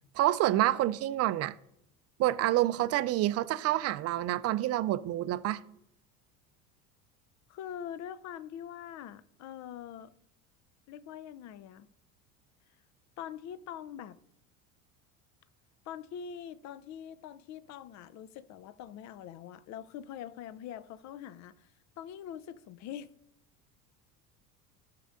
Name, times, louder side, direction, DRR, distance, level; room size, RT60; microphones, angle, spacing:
voice 1, 0.1-1.5 2.2-5.6, right 14 dB, 35° right, 0.5 m, -28 dB
voice 2, 7.5-10.1 10.9-11.9 13.2-14.2 15.9-21.7 22.0-23.1, left 9 dB, 40° left, 0.6 m, -43 dB
15.0 x 6.7 x 2.5 m
hypercardioid pair, 75°, 44 cm